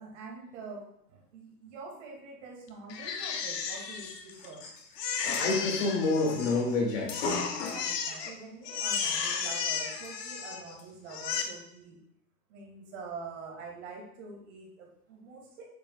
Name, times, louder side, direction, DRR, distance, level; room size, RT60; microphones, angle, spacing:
voice 1, 0.0-4.7 7.7-12.0 12.5-15.7, right 4 dB, 45° right, -1 dB, 2.8 m, -45 dB
Crying sobbing, 2.9-4.6 5.0-6.8 7.1-8.3 8.6-10.7 11.1-11.4, left 6 dB, 75° left, 1.4 m, -34 dB
voice 2, 4.3-4.7 5.0-7.9 8.2-8.3, left 3 dB, 55° left, -1 dB, 2.9 m, -30 dB
sound 1, 4.8-5.8 6.3-6.4 6.8-8.4 8.7-8.8 9.1-9.2 10.0-10.1 10.8-10.9 11.4-11.5, left 6 dB, 15° left, 0.6 m, -48 dB
9.0 x 6.7 x 2.5 m, 0.75 s
hypercardioid pair, 155°, 49 cm